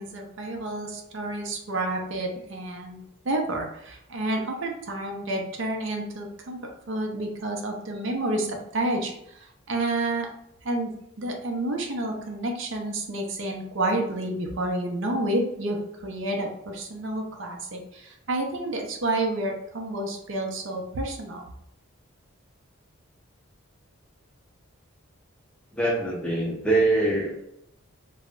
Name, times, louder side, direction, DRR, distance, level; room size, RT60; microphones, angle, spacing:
voice 1, 0.0-6.6 6.9-10.3 10.6-15.8 16.0-21.5, right 1 dB, 60° right, 2 dB, 0.5 m, -30 dB
voice 2, 25.7-27.4, right 2 dB, 5° left, -4 dB, 0.4 m, -24 dB
2.3 x 2.0 x 3.6 m, 0.75 s
head